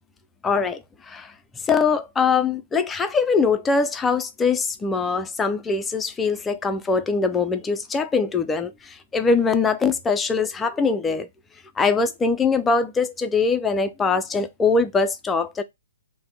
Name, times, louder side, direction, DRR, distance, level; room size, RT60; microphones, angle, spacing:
voice 1, 0.4-0.8 1.1-1.3 1.7-11.3 11.8-15.6, left 4 dB, 10° left, 0.3 m, -22 dB
3.5 x 2.1 x 3.3 m
figure-of-eight pair, 125°, 0 cm